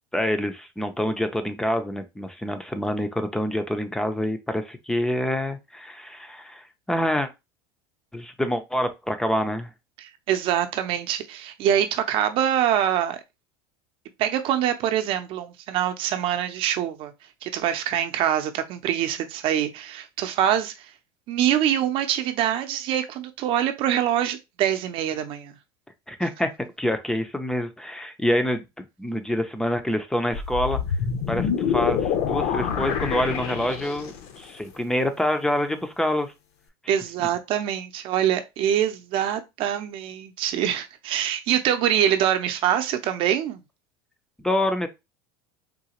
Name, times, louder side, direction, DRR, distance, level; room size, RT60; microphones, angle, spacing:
voice 1, 0.1-7.3 8.1-9.7 26.1-26.5 26.8-30.8 31.3-36.3 44.4-44.9, left 1 dB, 5° left, 0.5 m, -26 dB
voice 2, 10.0-13.2 14.2-17.1 17.4-20.7 21.3-25.5 36.9-43.6, right 10 dB, 50° right, 0.6 m, -24 dB
sound 1, 30.3-34.3, left 7 dB, 60° left, 0.7 m, -26 dB
3.8 x 2.4 x 2.9 m
supercardioid pair, 130°, 11 cm